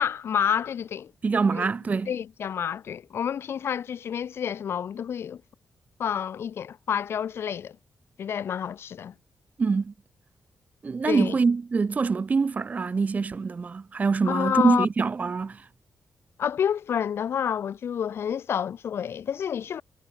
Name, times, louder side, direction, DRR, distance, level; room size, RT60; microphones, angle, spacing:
voice 1, 0.0-1.1 1.5-1.7 2.1-5.4 6.0-7.8 8.2-9.1 11.0-11.3 14.3-14.9 16.4-19.8, left 8 dB, 75° left, 1.2 m, -28 dB
voice 2, 1.2-2.1 9.6-9.9 10.8-15.7, right 4 dB, 40° right, 0.4 m, -25 dB
cardioid pair, 75°, 4 cm